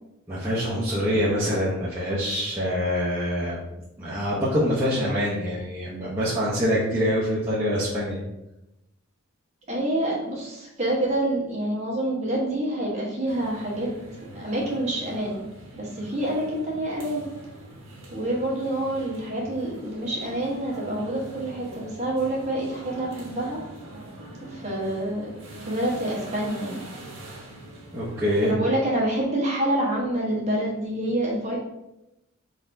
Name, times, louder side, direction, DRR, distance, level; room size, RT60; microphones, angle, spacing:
voice 1, 0.3-3.6 4.0-8.2 27.9-28.5, equal, 15° right, -10 dB, 0.7 m, -25 dB
voice 2, 9.7-13.9 14.3-15.4 15.7-17.2 18.1-23.6 24.5-25.3 25.7-26.8 28.4-31.6, right 1 dB, 30° right, -5 dB, 1.1 m, -27 dB
sound 1, 13.3-28.5, right 2 dB, 60° right, 1.2 m, -42 dB
4.3 x 3.9 x 2.6 m, 0.91 s
head